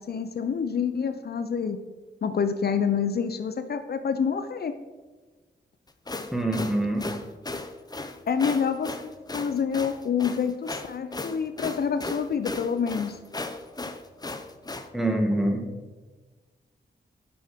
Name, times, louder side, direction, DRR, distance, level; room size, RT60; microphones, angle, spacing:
voice 1, 0.0-1.8 2.2-4.7 8.3-13.2, left 6 dB, 60° left, 9 dB, 0.6 m, -27 dB
sound 1, 5.9-14.9, left 2 dB, 20° left, 0.7 m, -36 dB
voice 2, 6.3-7.0 14.9-15.6, right 1 dB, ahead, 2 dB, 1.7 m, -25 dB
9.5 x 6.1 x 5.0 m, 1.3 s
wide cardioid pair, 85°, 18 cm